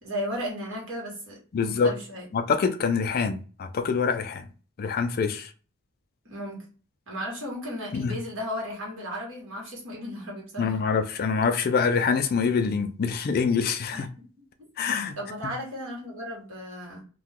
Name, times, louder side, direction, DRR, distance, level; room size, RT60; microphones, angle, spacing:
voice 1, 0.0-2.3 6.2-6.6 7.1-10.8 13.9-14.3 14.6-14.7 15.2-17.0, equal, 60° right, 1.5 m, -35 dB
voice 2, 1.5-1.9 2.3-4.5 4.8-5.5 7.9-8.2 10.6-14.1 14.8-15.2, left 5 dB, 40° left, 0.3 m, -25 dB
2.8 x 2.2 x 3.6 m
head